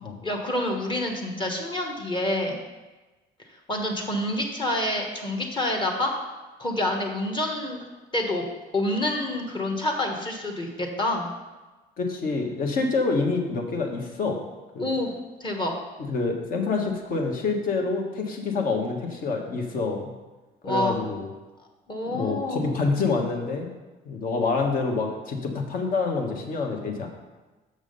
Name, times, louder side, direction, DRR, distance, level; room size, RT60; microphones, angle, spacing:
voice 1, 0.2-2.6 3.7-6.1 6.6-7.8 8.1-8.4 8.7-11.3 14.8-15.1 15.4-15.7 20.6-20.9 21.9-22.7, left 1 dB, 30° left, 1 dB, 1.2 m, -27 dB
voice 2, 12.0-14.4 14.7-14.9 16.0-20.1 20.7-21.3 22.1-23.7 24.0-27.1, left 4 dB, 55° left, 2 dB, 1.4 m, -27 dB
6.5 x 6.1 x 5.4 m, 1.2 s
cardioid pair, 110°, 17 cm